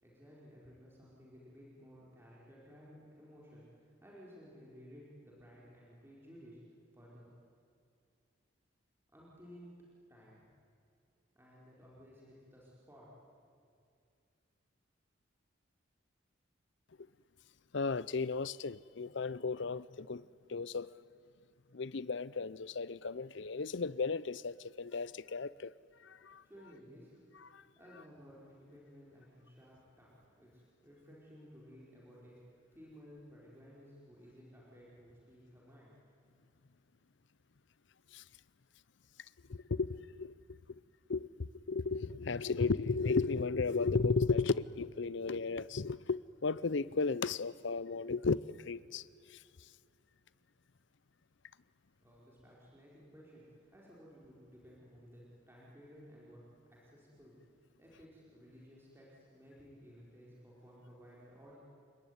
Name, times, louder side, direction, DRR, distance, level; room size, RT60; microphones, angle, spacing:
voice 1, 0.0-6.6 6.9-7.3 9.1-9.8 10.1-10.4 11.3-13.1 26.4-27.2 27.8-32.4 32.7-35.9 52.0-56.4 56.7-57.4 57.8-61.6, equal, 10° right, -6 dB, 4.8 m, -56 dB
voice 2, 17.7-20.9 21.7-25.7 26.0-26.4 27.4-27.6 38.1-38.2 39.5-40.3 41.1-41.3 41.7-48.4 48.7-49.0 49.3-49.4, left 4 dB, 60° left, 19 dB, 0.6 m, -34 dB
29.5 x 19.5 x 9.6 m, 2.4 s
head